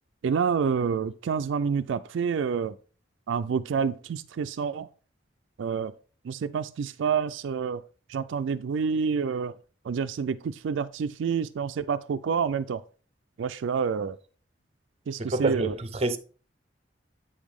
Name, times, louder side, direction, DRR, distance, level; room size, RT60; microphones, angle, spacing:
voice 1, 0.2-2.7 3.3-4.9 5.6-5.9 6.2-7.8 8.1-9.5 9.9-12.8 13.4-14.2 15.1-15.7, right 6 dB, 75° right, 0.3 m, -28 dB
voice 2, 15.2-16.2, right 2 dB, 30° right, 0.6 m, -27 dB
8.6 x 5.2 x 3.5 m
head